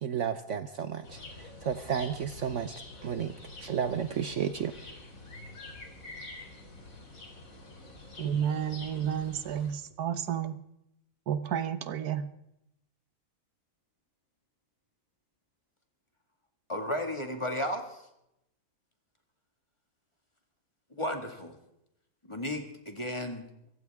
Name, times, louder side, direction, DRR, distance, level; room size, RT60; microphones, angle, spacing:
voice 1, 0.0-2.7 3.0-3.3 3.6-4.7, right 8 dB, 60° right, 10 dB, 1.0 m, -32 dB
sound 1, 1.0-9.7, left 2 dB, 65° left, 3.8 m, -47 dB
voice 2, 8.2-10.6 11.3-12.3, right 9 dB, 85° right, 12 dB, 1.5 m, -31 dB
voice 3, 16.7-18.0 20.9-21.5 22.3-23.5, left 1 dB, 20° left, 4 dB, 2.0 m, -34 dB
25.0 x 15.0 x 3.6 m, 0.81 s
omnidirectional pair, 1.6 m